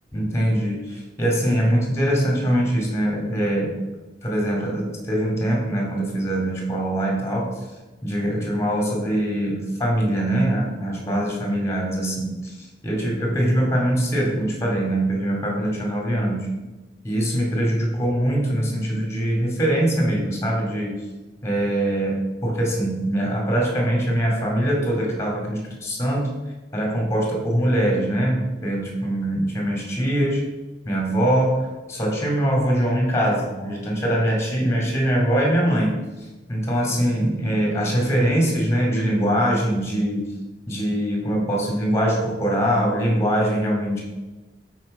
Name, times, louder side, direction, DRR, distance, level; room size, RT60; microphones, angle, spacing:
voice 1, 0.1-3.8 4.2-7.5 8.0-16.5 17.0-21.0 21.4-26.4 26.7-30.4 30.8-36.0 36.5-40.3 40.7-44.0, right 1 dB, 15° left, -1 dB, 2.3 m, -23 dB
7.8 x 4.7 x 5.3 m, 1.2 s
head